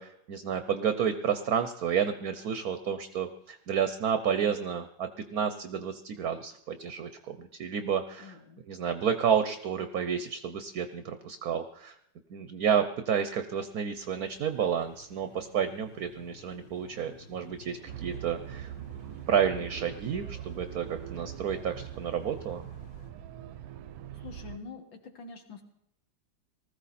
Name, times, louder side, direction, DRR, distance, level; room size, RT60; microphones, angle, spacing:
voice 1, 0.0-8.4 8.7-12.0 12.3-18.7 19.3-22.6, right 7 dB, 60° right, 9 dB, 1.1 m, -30 dB
voice 2, 8.2-8.6 24.1-25.6, left 5 dB, 70° left, 4 dB, 2.6 m, -46 dB
sound 1, 13.9-23.1, equal, 40° left, 2.9 m, -54 dB
sound 2, 17.9-24.6, right 11 dB, 80° right, 1.5 m, -42 dB
19.5 x 14.5 x 4.2 m, 0.76 s
omnidirectional pair, 2.2 m